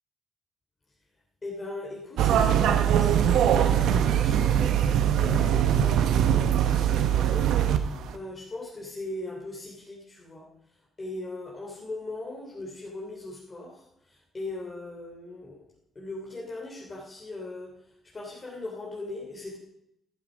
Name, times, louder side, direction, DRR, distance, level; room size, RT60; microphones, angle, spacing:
voice 1, 1.4-7.5 7.8-10.5 11.0-15.6 15.9-17.7 18.1-19.6, left 2 dB, 30° left, -3 dB, 2.9 m, -39 dB
sound 1, 2.2-7.8 8.1-8.2, right 9 dB, 85° right, 0.9 m, -22 dB
11.5 x 11.5 x 5.0 m, 0.80 s
cardioid pair, 90°, 0 cm